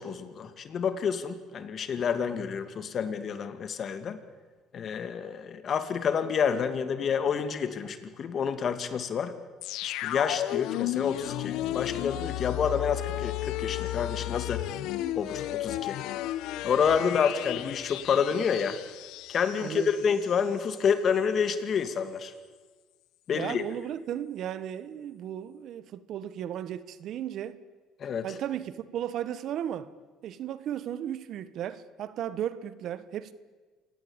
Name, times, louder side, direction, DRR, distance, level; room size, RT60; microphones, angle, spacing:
voice 1, 0.0-4.2 4.7-9.3 9.8-14.6 15.1-16.0 16.6-18.8 19.3-22.3 23.3-23.6 28.0-28.3, left 7 dB, 45° left, 2.4 m, -28 dB
sound 1, 9.6-20.4 20.7-20.8, left 14 dB, 75° left, 0.9 m, -34 dB
voice 2, 19.6-20.0 23.3-27.6 28.2-29.9 30.2-33.3, right 10 dB, 55° right, 1.3 m, -35 dB
27.0 x 17.0 x 8.9 m
cardioid pair, 115°, 0 cm